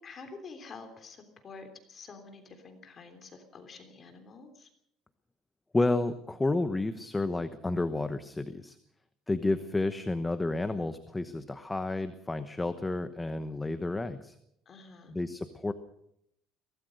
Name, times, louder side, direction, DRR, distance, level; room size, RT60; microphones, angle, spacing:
voice 1, 0.0-4.7 14.6-15.1, left 4 dB, 30° left, 6 dB, 3.4 m, -48 dB
voice 2, 5.7-8.8 9.3-14.4 15.1-15.7, left 2 dB, 10° left, 10 dB, 1.0 m, -31 dB
23.0 x 17.5 x 6.5 m, 0.75 s
cardioid pair, 150°, 0 cm